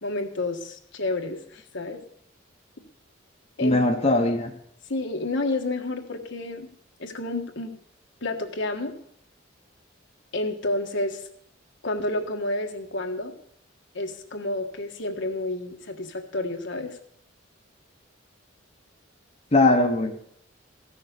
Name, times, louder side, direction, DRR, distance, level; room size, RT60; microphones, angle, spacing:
voice 1, 0.0-2.0 3.6-3.8 4.9-6.7 7.0-7.7 8.2-8.9 10.3-11.2 11.8-13.3 13.9-17.0, left 2 dB, 65° left, 4 dB, 1.5 m, -30 dB
voice 2, 3.6-4.5 19.5-20.2, left 2 dB, 35° left, 2 dB, 1.0 m, -20 dB
14.5 x 6.6 x 8.3 m, 0.69 s
head